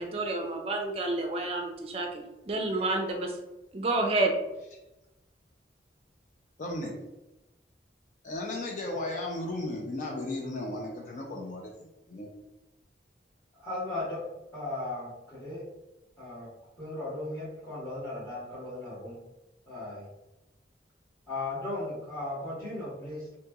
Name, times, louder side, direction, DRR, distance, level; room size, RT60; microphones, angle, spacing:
voice 1, 0.0-3.3 3.7-4.3, right 2 dB, 35° right, 2 dB, 0.4 m, -29 dB
voice 2, 6.6-7.0 8.2-12.3, left 2 dB, 45° left, 0 dB, 0.4 m, -35 dB
voice 3, 13.5-14.2 14.5-15.6 16.2-16.5 16.8-19.2 19.7-20.1 21.3-23.3, left 2 dB, 20° left, -14 dB, 1.2 m, -36 dB
2.9 x 2.7 x 2.3 m, 0.98 s
head